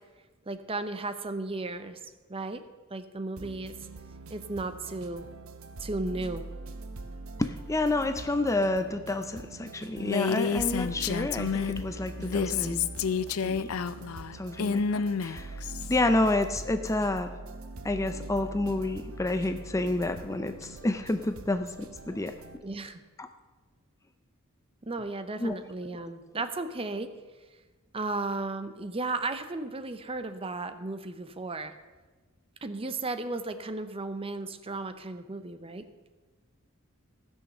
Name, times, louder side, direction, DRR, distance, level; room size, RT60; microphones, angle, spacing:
voice 1, 0.5-2.0 2.3-2.6 2.9-3.7 4.3-5.3 5.8-6.5 22.6-23.0 24.8-27.1 27.9-31.7 32.6-35.9, right 3 dB, 25° right, 10 dB, 0.7 m, -34 dB
sound 1, 3.4-22.6, right 2 dB, 70° right, 0.8 m, -43 dB
voice 2, 7.4-12.8 13.4-13.7 14.3-15.6 15.9-17.3 17.8-22.3 23.2-23.3 25.4-25.6, left 2 dB, 15° left, 8 dB, 0.5 m, -29 dB
Female speech woman speaking, 10.0-11.8 12.2-16.0, left 6 dB, 90° left, 0.5 m, -29 dB
15.5 x 6.4 x 6.7 m, 1.3 s
head